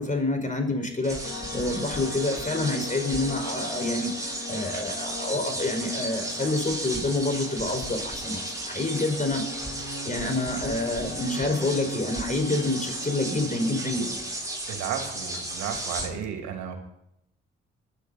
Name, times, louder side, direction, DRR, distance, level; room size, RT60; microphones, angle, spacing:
voice 1, 0.0-9.4 10.0-14.1, left 2 dB, 25° left, 5 dB, 5.2 m, -28 dB
sound 1, 1.0-16.1, right 1 dB, 10° right, 7.1 m, -34 dB
sound 2, 1.2-14.2, left 4 dB, 55° left, 3.2 m, -41 dB
voice 2, 14.7-16.8, right 8 dB, 75° right, 5 dB, 2.5 m, -33 dB
25.5 x 10.0 x 4.2 m, 0.76 s
hypercardioid pair, 45°, 29 cm